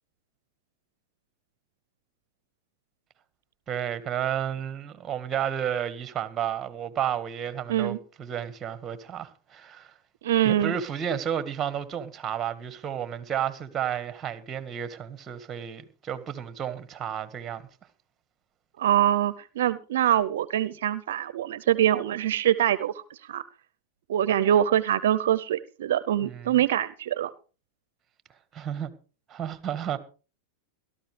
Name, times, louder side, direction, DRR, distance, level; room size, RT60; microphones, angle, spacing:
voice 1, 3.7-9.9 10.4-17.7 26.2-26.6 28.5-28.9 29.3-30.0, right 9 dB, 25° right, 1.6 m, -32 dB
voice 2, 10.2-10.7 18.8-22.9 23.3-23.4 24.1-27.3, right 11 dB, 75° right, 0.6 m, -24 dB
17.5 x 13.0 x 3.3 m
hypercardioid pair, 110°, 0 cm